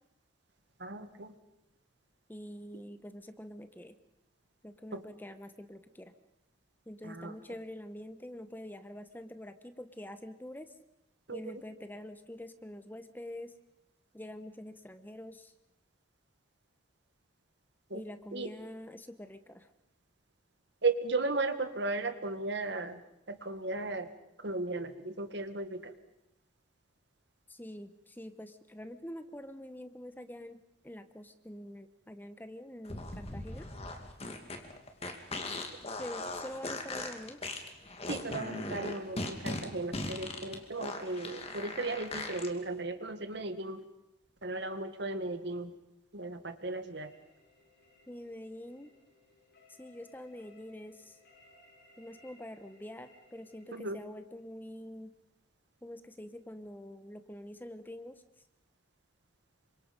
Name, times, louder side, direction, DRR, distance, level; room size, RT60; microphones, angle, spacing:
voice 1, 0.8-1.3 4.9-5.0 7.0-7.3 11.3-11.4 17.9-18.0 18.3-18.5 20.8-23.0 23.3-24.1 24.4-25.9 38.1-43.9 44.4-45.7 46.1-47.1 53.7-54.0, right 3 dB, 60° right, 9 dB, 1.8 m, -35 dB
voice 2, 2.3-4.0 4.6-6.1 6.9-10.7 11.3-13.5 14.1-15.5 17.9-19.7 27.5-33.7 36.0-37.4 48.1-48.9 49.8-51.2 52.0-55.1 55.8-58.2, left 1 dB, 10° left, 9 dB, 1.0 m, -46 dB
many farts, 32.8-42.5, left 2 dB, 30° left, 2.5 m, -39 dB
sound 1, 47.0-53.8, left 3 dB, 55° left, 7.9 m, -63 dB
28.0 x 25.0 x 5.3 m, 0.84 s
head